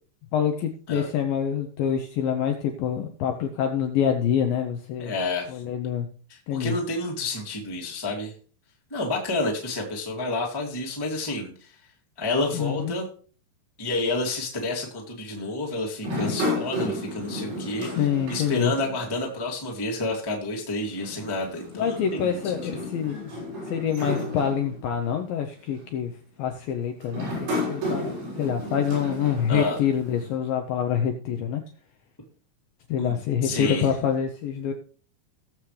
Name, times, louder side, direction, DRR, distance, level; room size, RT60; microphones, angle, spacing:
voice 1, 0.3-5.1 5.5-6.1 6.5-6.8 12.5-13.0 18.0-18.7 21.8-23.3 23.7-26.1 26.4-31.6 32.9-34.7, left 8 dB, 75° left, 4 dB, 2.2 m, -26 dB
voice 2, 5.0-5.6 6.3-8.3 8.9-11.8 12.2-13.0 13.8-22.6 29.5-29.8 33.0-33.1 33.4-33.9, left 2 dB, 10° left, -1 dB, 1.0 m, -29 dB
sound 1, 16.0-19.4 19.6-19.7 20.9-25.1 25.8-26.1 27.0-30.3, left 1 dB, 85° right, 8.7 m, -33 dB
19.0 x 7.4 x 3.3 m, 0.41 s
omnidirectional pair, 5.0 m